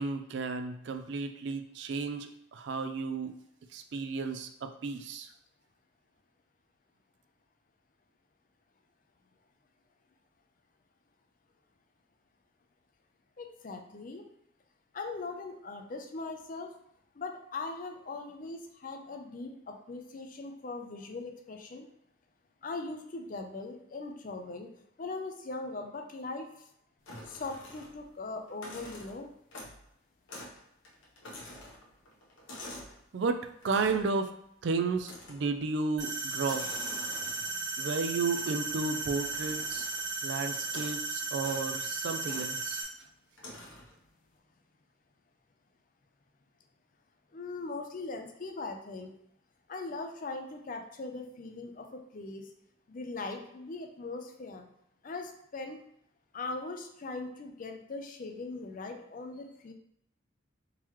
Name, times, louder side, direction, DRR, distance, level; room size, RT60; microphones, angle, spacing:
voice 1, 0.0-3.3 3.7-5.3 33.1-34.3 34.6-36.7 37.8-39.9 40.2-42.8, right 4 dB, 60° right, 8 dB, 0.4 m, -33 dB
voice 2, 13.4-14.2 14.9-16.7 17.2-21.9 22.6-24.7 25.0-26.5 27.2-29.3 37.6-37.7 47.3-49.1 49.7-52.5 52.9-54.6 55.0-55.8 56.3-59.7, left 3 dB, 45° left, 5 dB, 0.4 m, -40 dB
sound 1, 27.1-28.1 28.5-29.9 30.3-30.6 30.8-33.0 33.6-34.1 35.0-35.6 36.3-37.6 38.4-40.1 40.7-41.0 41.4-41.7 42.2-42.5 43.4-43.9, left 1 dB, 85° left, 1.1 m, -47 dB
sound 2, 36.0-42.8, right 3 dB, 80° right, 1.0 m, -35 dB
3.7 x 2.9 x 3.0 m, 0.74 s
head